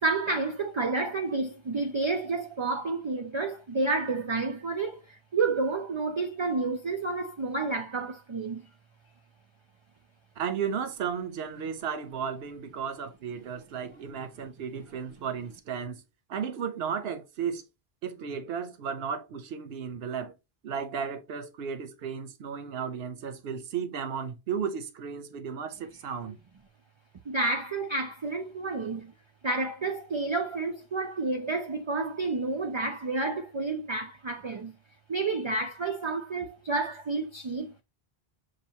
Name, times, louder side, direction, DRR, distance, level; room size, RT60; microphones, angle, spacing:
voice 1, 0.0-8.7 27.3-29.1 29.4-34.8 35.1-37.8, right 3 dB, 50° right, 0.3 m, -30 dB
voice 2, 10.4-16.0 16.3-17.6 18.0-20.4 20.6-26.4, right 7 dB, 75° right, 0.9 m, -34 dB
6.5 x 2.6 x 2.7 m
omnidirectional pair, 1.0 m